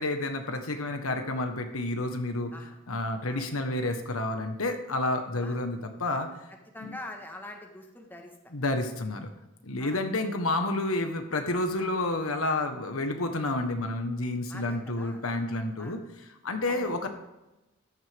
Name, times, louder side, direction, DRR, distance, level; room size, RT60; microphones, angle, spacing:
voice 1, 0.0-2.5 2.9-6.3 6.8-6.9 8.5-9.3 9.6-16.0 16.4-17.1, left 2 dB, 85° left, 5 dB, 1.4 m, -30 dB
voice 2, 6.7-8.4 9.8-10.0 11.8-11.9 14.5-15.2 15.8-16.0 16.6-16.9, left 1 dB, 10° left, 2 dB, 1.5 m, -44 dB
14.0 x 10.5 x 3.6 m, 0.97 s
head